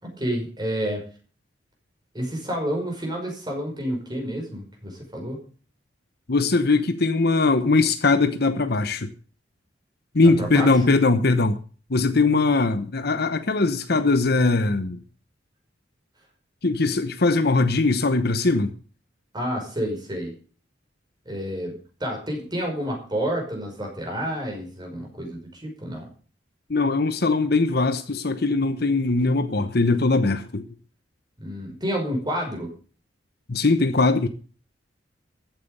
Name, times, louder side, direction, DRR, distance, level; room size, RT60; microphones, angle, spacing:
voice 1, 0.0-1.0 2.1-5.4 10.2-10.7 19.3-20.3 21.3-26.1 31.4-32.7, equal, 25° right, 5.5 m, -29 dB
voice 2, 6.3-9.1 10.1-11.6 11.9-15.0 16.6-18.7 26.7-30.6 33.5-34.3, left 3 dB, 60° left, 1.0 m, -21 dB
14.5 x 9.3 x 6.7 m
head